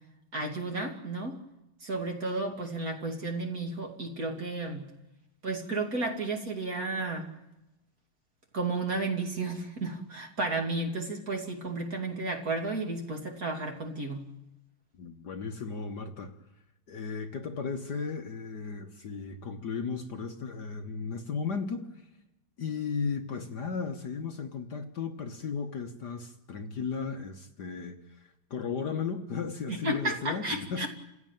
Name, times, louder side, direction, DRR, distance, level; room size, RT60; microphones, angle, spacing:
voice 1, 0.3-1.4 1.8-4.9 5.4-7.3 8.5-14.2 29.7-30.9, right 2 dB, 40° right, 2 dB, 2.9 m, -32 dB
voice 2, 15.0-16.3 16.9-22.1 22.6-30.9, left 5 dB, 55° left, 5 dB, 1.7 m, -35 dB
29.0 x 16.5 x 9.1 m, 0.96 s
omnidirectional pair, 2.4 m